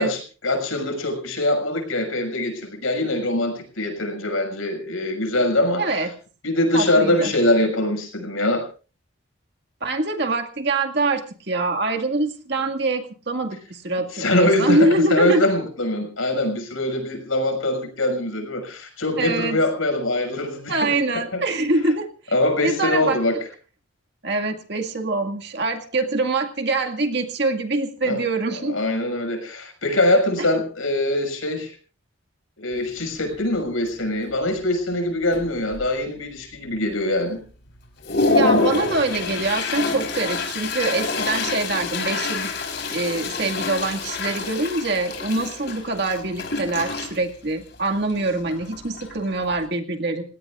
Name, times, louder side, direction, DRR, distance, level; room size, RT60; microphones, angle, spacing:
voice 1, 0.0-6.0 6.4-8.6 14.1-20.9 21.3-21.4 22.3-23.4 28.0-28.2 28.6-31.7 32.6-37.4, left 1 dB, 80° left, 5 dB, 6.3 m, -23 dB
voice 2, 5.8-6.1 6.7-7.3 9.8-15.5 19.2-19.6 20.7-22.1 22.6-23.2 24.2-28.8 30.4-30.5 38.3-42.5 42.9-50.2, right 2 dB, 55° right, 4 dB, 2.0 m, -24 dB
Toilet flush, 32.7-32.8 33.3-33.6 33.9-34.4 34.9-35.0 35.3-36.1 36.5-36.6 37.2-37.3 37.7-49.7, left 3 dB, 55° left, 4.3 m, -27 dB
29.5 x 17.0 x 2.5 m, 0.37 s
head